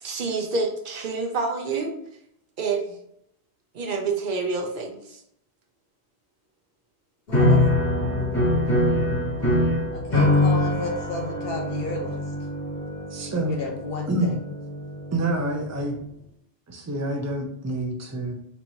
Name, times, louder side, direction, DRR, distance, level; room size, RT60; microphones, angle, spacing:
voice 1, 0.0-1.9 2.6-3.0 3.7-5.2, right 4 dB, 55° right, 2 dB, 0.8 m, -28 dB
voice 2, 7.3-7.6 9.9-12.2 13.5-14.3, left 3 dB, 65° left, 1 dB, 0.9 m, -32 dB
sound 1, 7.3-15.6, left 1 dB, 45° left, 1.7 m, -24 dB
voice 3, 13.1-13.6 14.1-14.4 15.1-16.0 16.7-18.3, right 1 dB, 20° right, 2 dB, 0.4 m, -27 dB
4.4 x 2.9 x 2.7 m, 0.74 s
omnidirectional pair, 1.1 m